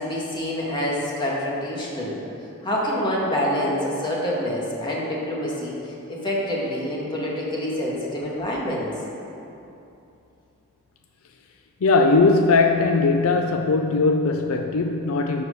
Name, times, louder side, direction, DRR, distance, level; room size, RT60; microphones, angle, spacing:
voice 1, 0.0-2.2 2.6-8.9, left 1 dB, 20° left, -5 dB, 1.8 m, -26 dB
voice 2, 11.8-15.4, left 3 dB, 70° left, 4 dB, 0.5 m, -19 dB
11.5 x 4.8 x 6.7 m, 2.9 s
head